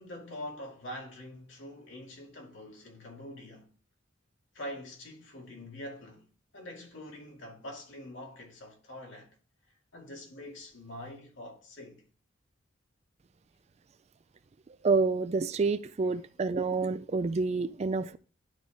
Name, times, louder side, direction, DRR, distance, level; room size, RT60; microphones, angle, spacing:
voice 1, 0.0-3.7 4.5-6.2 6.5-9.3 9.9-12.0, left 1 dB, 75° left, 2.3 m, -44 dB
voice 2, 14.8-18.2, right 4 dB, 35° right, 0.3 m, -28 dB
11.5 x 3.8 x 3.5 m
head